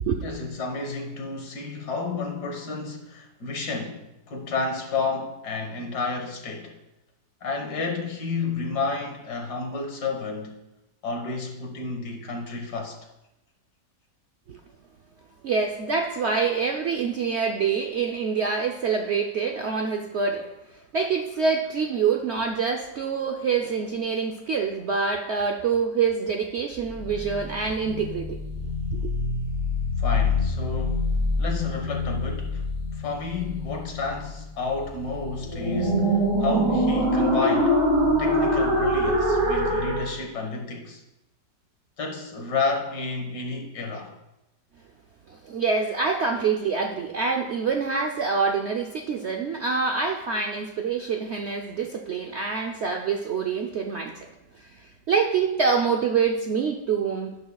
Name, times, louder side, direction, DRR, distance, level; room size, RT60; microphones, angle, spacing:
voice 1, 0.2-6.7 7.4-10.6 11.0-13.0 30.0-31.1 31.4-32.6 32.9-37.8 38.2-41.0 42.0-44.1, left 4 dB, 70° left, 2.0 m, -31 dB
voice 2, 15.4-20.5 20.7-28.4 28.9-29.1 45.3-54.2 54.5-57.4, right 5 dB, 65° right, 0.7 m, -26 dB
sound 1, 26.9-40.1, left 1 dB, 40° right, 3.3 m, -25 dB
11.5 x 11.0 x 2.3 m
omnidirectional pair, 1.8 m